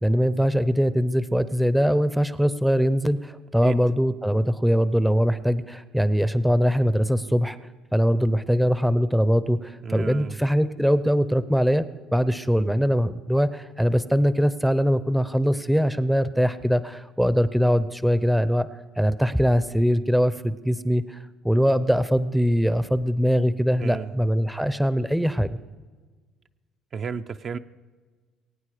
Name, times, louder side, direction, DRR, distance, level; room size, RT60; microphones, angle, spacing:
voice 1, 0.0-7.6 7.9-11.9 12.1-18.7 19.0-21.2 21.4-25.6, equal, ahead, 14 dB, 0.6 m, -22 dB
voice 2, 9.8-10.4 23.8-24.2 26.9-27.6, right 6 dB, 40° right, 8 dB, 0.5 m, -32 dB
23.0 x 9.1 x 4.9 m, 1.4 s
supercardioid pair, 95°, 0 cm